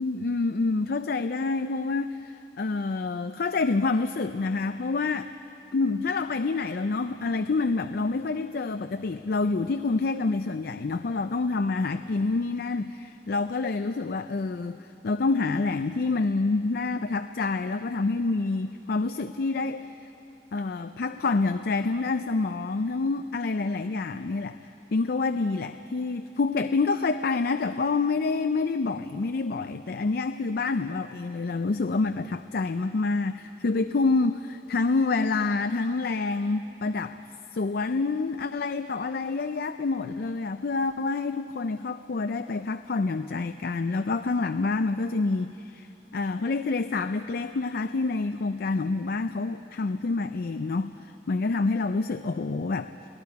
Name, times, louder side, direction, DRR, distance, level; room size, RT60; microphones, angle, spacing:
voice 1, 0.0-5.3 5.7-19.9 20.5-24.6 24.9-37.2 37.5-52.9, left 3 dB, 60° left, 9 dB, 0.5 m, -27 dB
29.5 x 19.0 x 4.8 m, 2.7 s
head